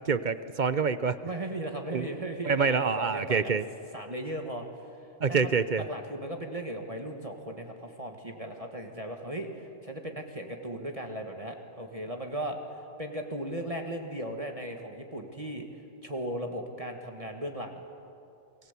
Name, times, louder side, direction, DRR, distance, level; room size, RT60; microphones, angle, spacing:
voice 1, 0.1-1.2 1.9-2.1 2.5-3.6 5.2-5.8, right 5 dB, 45° right, 13 dB, 0.8 m, -26 dB
voice 2, 1.2-3.6 3.9-4.7 5.3-15.7 16.0-17.8, right 1 dB, 30° right, 3 dB, 1.9 m, -37 dB
28.5 x 21.5 x 8.4 m, 2.6 s
omnidirectional pair, 1.2 m